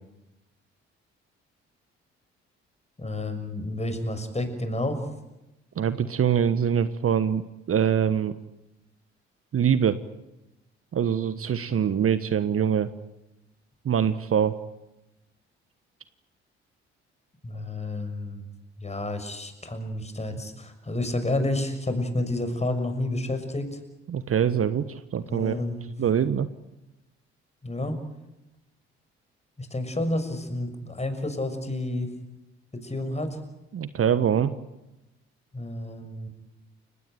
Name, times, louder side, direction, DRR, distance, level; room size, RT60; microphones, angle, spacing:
voice 1, 3.0-5.1 17.4-18.5 18.8-23.8 25.3-25.9 27.6-28.0 29.6-32.1 32.7-33.4 35.5-36.3, left 1 dB, 20° left, 8 dB, 6.3 m, -30 dB
voice 2, 5.8-8.3 9.5-10.0 10.9-12.9 13.8-14.6 24.1-25.6 26.0-26.5 33.7-34.5, right 8 dB, 40° right, 14 dB, 1.3 m, -24 dB
30.0 x 17.0 x 9.3 m, 0.93 s
figure-of-eight pair, 45°, 33 cm